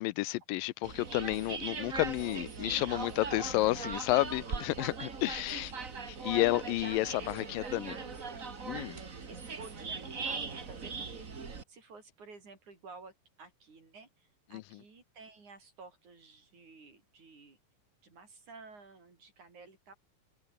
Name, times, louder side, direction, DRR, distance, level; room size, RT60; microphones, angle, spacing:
voice 1, 0.0-5.7 6.1-7.9 8.6-9.0 14.5-14.6, left 19 dB, 85° left, 2.3 m, -31 dB
sound 1, 0.8-11.6, right 5 dB, 30° right, 1.9 m, -40 dB
voice 2, 5.5-5.8 7.2-8.2 9.3-17.6 18.0-19.9, right 4 dB, 55° right, 7.2 m, -53 dB
omnidirectional pair, 4.0 m